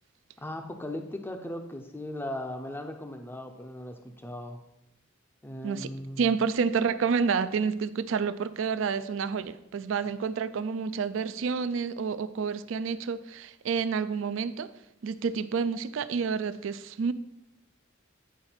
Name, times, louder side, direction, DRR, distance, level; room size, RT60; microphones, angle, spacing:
voice 1, 0.4-4.6 5.4-6.3, left 1 dB, 10° left, 5 dB, 0.5 m, -38 dB
voice 2, 6.2-14.7 15.0-17.1, right 5 dB, 70° right, 14 dB, 0.4 m, -29 dB
9.6 x 4.8 x 4.3 m, 0.84 s
head